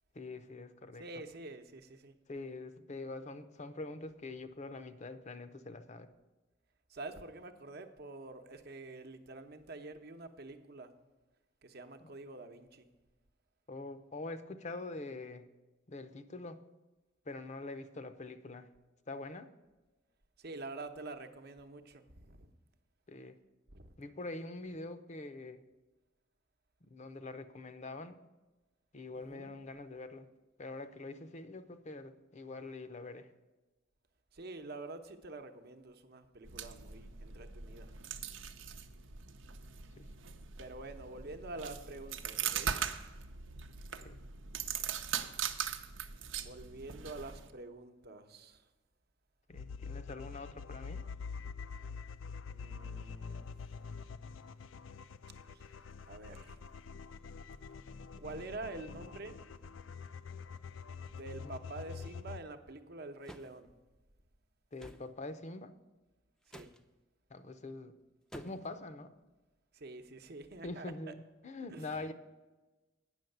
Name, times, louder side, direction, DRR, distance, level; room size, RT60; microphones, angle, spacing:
voice 1, 0.1-1.0 2.3-6.1 12.0-12.1 13.7-15.5 15.9-16.6 17.3-18.7 19.1-19.5 23.1-23.4 24.0-25.6 26.9-28.2 28.9-30.3 30.6-33.3 40.0-40.1 44.0-44.2 49.5-51.1 61.4-61.6 64.7-65.7 67.3-67.9 68.3-69.1 70.6-72.1, left 2 dB, 40° left, 11 dB, 0.7 m, -44 dB
voice 2, 1.0-2.2 6.9-10.9 11.6-12.9 20.4-22.5 23.7-24.0 29.2-29.5 34.3-38.0 40.6-43.1 46.4-48.7 52.5-53.5 55.5-55.7 56.1-56.6 58.2-59.3 61.1-63.7 66.5-66.7 69.7-71.1 71.7-71.9, right 2 dB, 55° right, 7 dB, 0.9 m, -47 dB
sound 1, 36.4-47.5, right 8 dB, 85° right, 0.8 m, -41 dB
sound 2, 49.5-62.4, left 5 dB, 85° left, 0.4 m, -46 dB
sound 3, 63.2-63.6 64.8-65.1 66.5-66.8 68.3-68.7, equal, 5° left, 0.5 m, -50 dB
9.1 x 6.3 x 7.9 m, 1.2 s
head